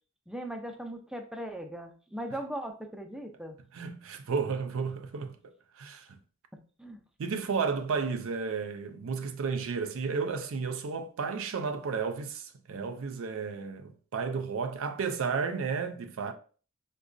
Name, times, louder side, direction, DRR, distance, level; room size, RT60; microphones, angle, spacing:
voice 1, 0.3-3.6 6.5-7.0, right 1 dB, 5° right, 0.4 m, -39 dB
voice 2, 3.7-6.1 7.2-16.3, right 5 dB, 65° right, 0.4 m, -33 dB
4.8 x 2.2 x 2.5 m
head